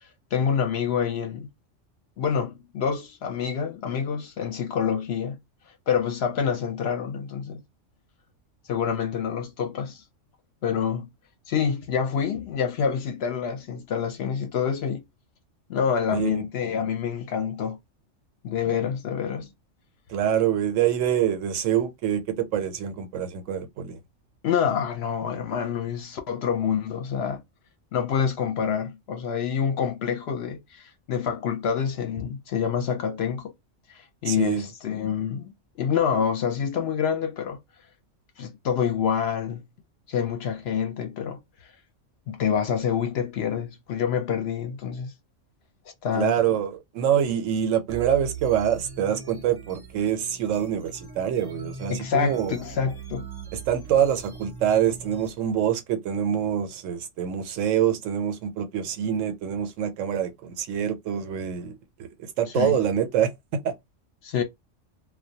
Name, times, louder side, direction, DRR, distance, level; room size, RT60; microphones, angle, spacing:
voice 1, 0.3-1.5 2.2-5.4 5.9-7.6 8.7-10.0 10.6-11.1 11.5-15.0 15.7-17.8 18.4-19.5 24.4-27.4 27.9-33.5 33.9-35.5 35.8-37.6 38.4-39.6 40.1-41.4 42.3-45.1 46.0-46.4 51.9-53.3 62.6-62.8 64.2-64.4, left 7 dB, 65° left, 0.8 m, -27 dB
voice 2, 16.1-16.4 20.1-24.0 34.3-34.7 46.1-52.6 53.5-62.1 62.4-63.3 63.6-63.7, right 9 dB, 90° right, 1.0 m, -25 dB
sound 1, 47.9-55.3, right 5 dB, 35° right, 0.4 m, -40 dB
2.2 x 2.2 x 2.7 m
omnidirectional pair, 1.3 m